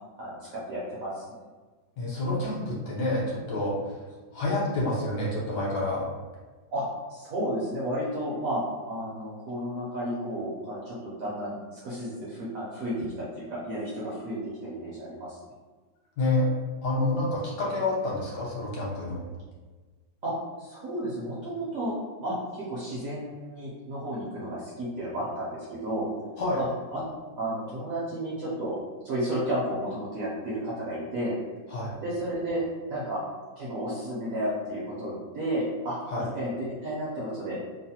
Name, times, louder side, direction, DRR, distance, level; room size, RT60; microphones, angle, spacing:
voice 1, 0.2-1.2 6.7-6.8 7.1-8.6 8.9-15.4 20.2-21.9 22.2-26.1 26.6-27.0 27.4-28.8 29.0-31.4 32.0-32.6 32.9-33.2 33.6-36.0 36.4-37.6, right 1 dB, 65° right, -7 dB, 0.9 m, -32 dB
voice 2, 2.0-4.0 4.3-6.0 16.2-16.5 16.8-19.2 26.4-26.6 31.7-31.9 36.1-36.3, left 2 dB, 70° left, -5 dB, 1.2 m, -28 dB
3.1 x 2.0 x 2.7 m, 1.3 s
omnidirectional pair, 2.0 m